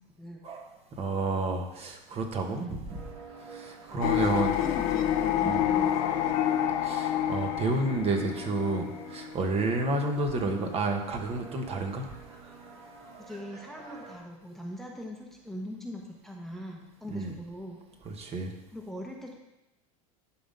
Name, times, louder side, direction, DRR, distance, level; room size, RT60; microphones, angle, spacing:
voice 1, 0.2-0.5 2.5-2.8 3.9-6.2 13.2-17.8 18.2-19.3, left 1 dB, ahead, 0 dB, 1.0 m, -41 dB
voice 2, 1.0-2.7 3.5-4.5 5.4-5.6 6.8-12.1 17.1-17.3 18.0-18.5, right 3 dB, 35° right, 4 dB, 1.3 m, -30 dB
sound 1, 2.9-14.2, right 4 dB, 80° right, 2.7 m, -48 dB
sound 2, 4.0-10.3, left 10 dB, 70° left, 0.9 m, -28 dB
11.0 x 3.8 x 5.4 m, 0.98 s
supercardioid pair, 110°, 18 cm